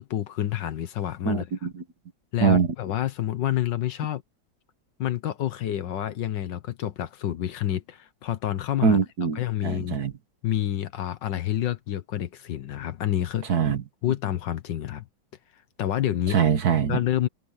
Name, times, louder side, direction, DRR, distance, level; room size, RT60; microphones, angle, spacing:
voice 1, 0.0-1.4 2.3-4.2 5.0-9.0 9.3-10.0 10.4-13.6 14.0-15.0 15.8-16.4 16.9-17.3, left 12 dB, 65° left, 1.5 m, -28 dB
voice 2, 1.3-1.8 2.4-2.7 8.8-10.1 13.5-13.8 16.3-17.0, right 6 dB, 55° right, 1.8 m, -23 dB
omnidirectional pair, 2.2 m